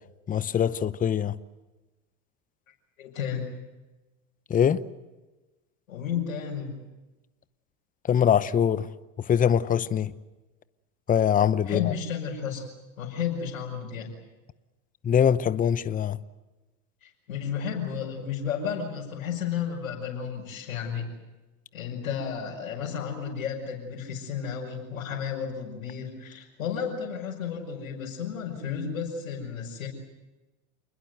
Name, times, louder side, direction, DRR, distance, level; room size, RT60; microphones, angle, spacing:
voice 1, 0.3-1.3 4.5-4.8 8.1-8.9 9.3-10.1 11.1-11.9 15.0-16.2, left 8 dB, 20° left, 0.8 m, -23 dB
voice 2, 3.0-3.5 5.9-6.7 11.7-12.6 13.0-14.1 17.0-21.1 21.7-29.9, left 7 dB, 85° left, 5.7 m, -32 dB
28.0 x 21.0 x 8.1 m
hypercardioid pair, 105°, 40 cm